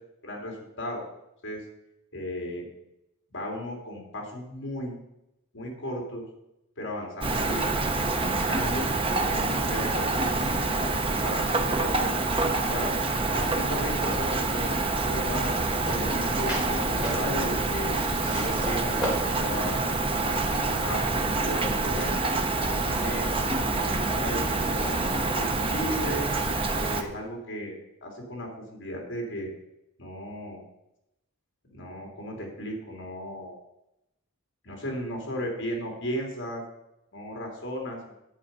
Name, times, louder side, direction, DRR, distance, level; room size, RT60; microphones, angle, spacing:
voice 1, 0.2-1.0 1.4-1.6 2.1-2.7 3.3-4.9 5.5-6.2 6.8-7.7 8.3-8.9 9.2-10.3 10.7-12.2 12.7-12.9 13.3-15.5 15.8-18.0 18.3-19.9 20.7-21.0 21.4-22.2 22.8-26.3 26.8-27.7 28.0-29.5 30.0-30.6 31.7-33.6 34.6-36.6 37.1-38.2, equal, 55° left, 1 dB, 3.0 m, -35 dB
Rain, 7.2-27.0, right 3 dB, 25° right, 0.8 m, -27 dB
sound 1, 15.8-21.1, right 1 dB, 5° right, 3.8 m, -36 dB
10.0 x 7.5 x 5.5 m, 0.87 s
head